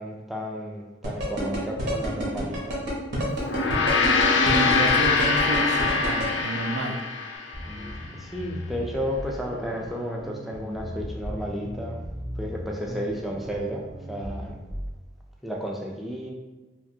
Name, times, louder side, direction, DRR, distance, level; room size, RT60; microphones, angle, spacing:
voice 1, 0.0-2.8 8.2-12.0 12.4-14.6 15.4-16.3, equal, ahead, -1 dB, 0.3 m, -32 dB
sound 1, 1.0-6.2, equal, 70° right, 0.9 m, -28 dB
Gong, 3.4-8.0, left 4 dB, 75° left, 0.3 m, -23 dB
voice 2, 4.4-7.0, right 2 dB, 85° right, 3 dB, 0.4 m, -30 dB
sound 2, 7.5-14.9, equal, 35° right, 0.6 m, -37 dB
2.9 x 2.5 x 2.6 m, 1.2 s
head